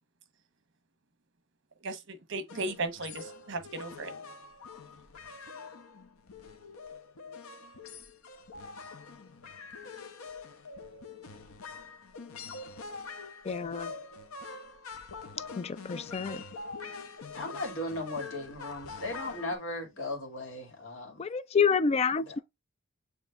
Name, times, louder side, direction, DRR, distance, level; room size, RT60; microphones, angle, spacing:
voice 1, 1.8-4.1, right 2 dB, 60° right, 1.0 m, -36 dB
sound 1, 2.5-19.6, left 4 dB, 80° left, 0.8 m, -44 dB
voice 2, 13.5-13.9 15.6-16.4 21.2-22.4, left 6 dB, 30° left, 0.3 m, -28 dB
voice 3, 17.3-21.2 22.2-22.4, left 1 dB, 65° left, 2.1 m, -37 dB
7.0 x 3.1 x 2.3 m
head